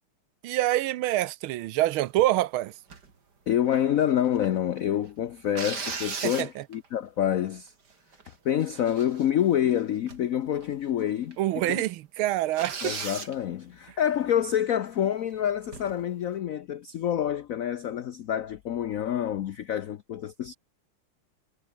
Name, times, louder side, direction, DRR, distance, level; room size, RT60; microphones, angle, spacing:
voice 1, 0.4-2.7 6.2-6.6 11.4-13.0, right 15 dB, 80° right, 1.6 m, -26 dB
sound 1, 2.9-3.1 3.7-4.6 5.5-6.9 7.5-7.6 7.9-8.3 8.6-9.5 10.1-10.3 10.6-10.7 11.3-11.4 11.7-11.8 12.5-13.4 15.7-16.0, right 5 dB, 50° right, 3.3 m, -37 dB
voice 2, 3.5-7.7 8.4-11.4 11.6-11.8 12.8-20.5, left 10 dB, 80° left, 0.7 m, -27 dB
omnidirectional pair, 2.3 m